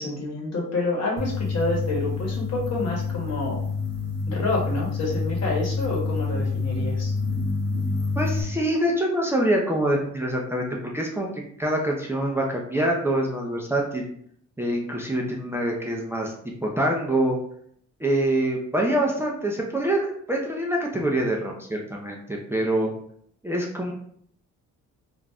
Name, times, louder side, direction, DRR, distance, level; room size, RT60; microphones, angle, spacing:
voice 1, 0.0-3.7 4.3-7.1, left 2 dB, 55° left, -2 dB, 1.1 m, -28 dB
sound 1, 1.2-8.4, left 4 dB, 35° right, 0.9 m, -27 dB
voice 2, 8.2-10.7 10.9-14.0 14.6-16.3 16.8-17.4 18.0-22.9 23.4-23.9, right 1 dB, 10° right, -1 dB, 0.5 m, -25 dB
2.5 x 2.1 x 3.3 m, 0.65 s
cardioid pair, 90°, 30 cm